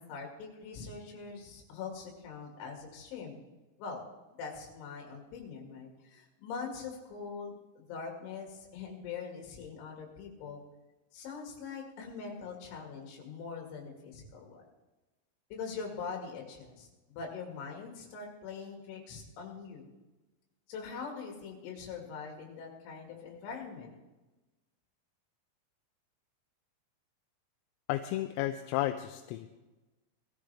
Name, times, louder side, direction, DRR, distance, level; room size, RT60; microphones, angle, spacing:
voice 1, 0.0-3.4 3.8-4.0 4.4-10.6 11.1-14.7 15.5-19.9 20.7-24.0, left 5 dB, 70° left, 1 dB, 4.4 m, -43 dB
voice 2, 27.9-29.5, left 14 dB, 85° left, 6 dB, 3.3 m, -33 dB
21.0 x 13.5 x 3.4 m, 1.1 s
omnidirectional pair, 6.0 m